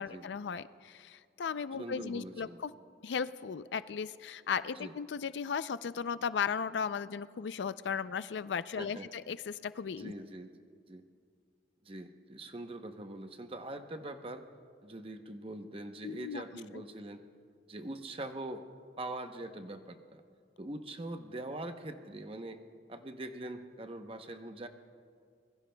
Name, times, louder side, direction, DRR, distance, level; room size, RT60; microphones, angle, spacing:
voice 1, 0.0-2.7 3.0-10.1 16.0-16.4, left 6 dB, 85° left, 15 dB, 0.4 m, -36 dB
voice 2, 1.8-2.6 4.8-5.0 8.8-9.1 10.0-11.0 11.8-14.4 14.8-17.2 17.7-18.6 19.0-20.2 20.6-22.6 22.9-24.7, right 1 dB, 30° right, 7 dB, 0.8 m, -43 dB
25.5 x 21.5 x 2.2 m, 2.2 s
head